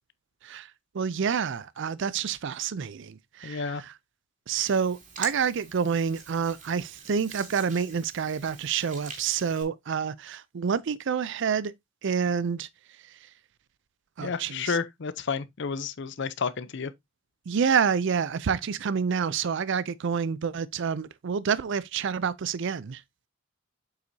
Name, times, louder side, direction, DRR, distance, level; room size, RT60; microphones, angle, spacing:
voice 1, 0.4-3.9 4.5-11.7 12.0-12.7 14.2-14.8 17.5-23.0, right 6 dB, 65° right, 0.4 m, -28 dB
voice 2, 3.4-3.8 14.2-16.9, left 5 dB, 60° left, 0.6 m, -31 dB
Hands, 4.6-9.6, right 5 dB, 40° right, 2.7 m, -44 dB
7.8 x 5.8 x 2.7 m
head